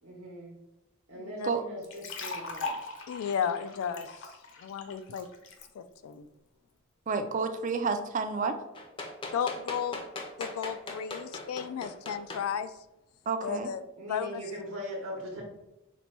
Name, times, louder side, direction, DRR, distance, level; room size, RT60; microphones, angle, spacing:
voice 1, 0.0-0.5 1.1-2.7 14.0-15.4, equal, 70° right, -2 dB, 0.9 m, -40 dB
voice 2, 1.1-1.5 3.1-4.3 4.6-5.3 5.7-6.3 9.3-10.0 10.4-12.7 13.4-14.4, left 7 dB, 85° left, 12 dB, 0.3 m, -34 dB
sound 1, 1.8-5.7, left 3 dB, 60° left, 0.7 m, -40 dB
voice 3, 7.1-8.6 13.3-13.7, right 4 dB, 35° right, 8 dB, 0.3 m, -30 dB
sound 2, 8.7-12.4 13.4-13.5, left 2 dB, 25° left, 0.5 m, -39 dB
4.3 x 2.2 x 4.1 m, 0.94 s
head